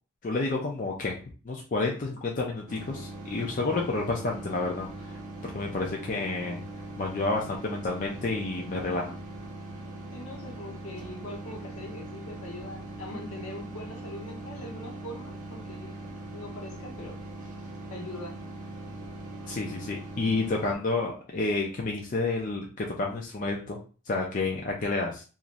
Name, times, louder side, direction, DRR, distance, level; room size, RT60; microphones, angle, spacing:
voice 1, 0.2-1.1 1.5-5.2 5.5-6.6 7.0-9.2 19.5-23.8 24.1-25.2, left 3 dB, 35° left, -1 dB, 0.4 m, -30 dB
sound 1, 2.7-20.7, right 2 dB, 35° right, 0.6 m, -41 dB
voice 2, 10.1-16.0 16.3-17.3 17.9-18.4, left 1 dB, 75° left, -2 dB, 1.0 m, -42 dB
3.0 x 2.5 x 2.5 m, 0.36 s
head